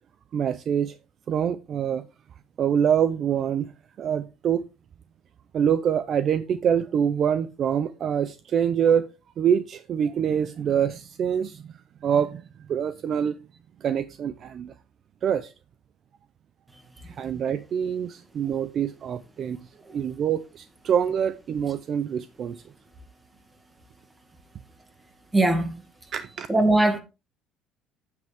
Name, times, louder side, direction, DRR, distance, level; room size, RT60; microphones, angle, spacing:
voice 1, 0.3-1.0 1.3-2.0 2.6-3.7 4.0-4.6 5.5-9.1 9.4-11.6 12.0-12.4 12.7-13.4 13.8-14.7 15.2-15.5 17.1-19.6 19.9-22.6 26.1-26.5, right 8 dB, 40° right, 0.5 m, -25 dB
voice 2, 25.3-25.9 26.5-27.0, right 2 dB, 10° right, 2.0 m, -22 dB
9.2 x 7.8 x 3.4 m
cardioid pair, 145°, 0 cm